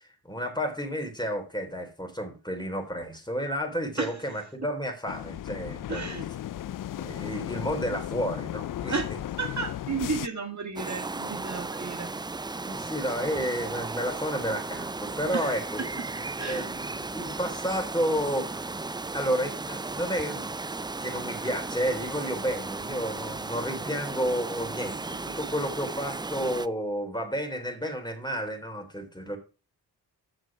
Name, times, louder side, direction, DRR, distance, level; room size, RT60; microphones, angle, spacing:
voice 1, 0.2-6.2 7.0-9.0 12.6-16.0 16.5-18.7 19.1-20.6 21.0-29.4, equal, 10° left, 4 dB, 3.7 m, -31 dB
sound 1, 5.1-10.3, left 12 dB, 55° left, 0.5 m, -35 dB
voice 2, 5.9-6.2 8.8-9.1 9.4-12.1 15.3-15.6 16.4-16.7, right 4 dB, 45° right, 3 dB, 1.8 m, -32 dB
sound 2, 10.8-26.7, right 3 dB, 10° right, 0.4 m, -35 dB
7.4 x 6.5 x 6.0 m, 0.34 s
cardioid pair, 45°, 40 cm